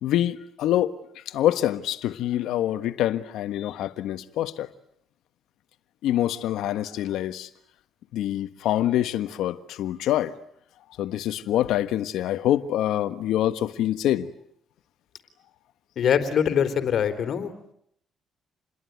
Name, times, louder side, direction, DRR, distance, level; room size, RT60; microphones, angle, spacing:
voice 1, 0.0-4.7 6.0-7.5 8.1-10.3 11.0-14.3, left 12 dB, 85° left, 1.4 m, -25 dB
voice 2, 16.0-17.7, left 8 dB, 65° left, 3.7 m, -24 dB
28.5 x 21.5 x 9.5 m
cardioid pair, 90°, 0 cm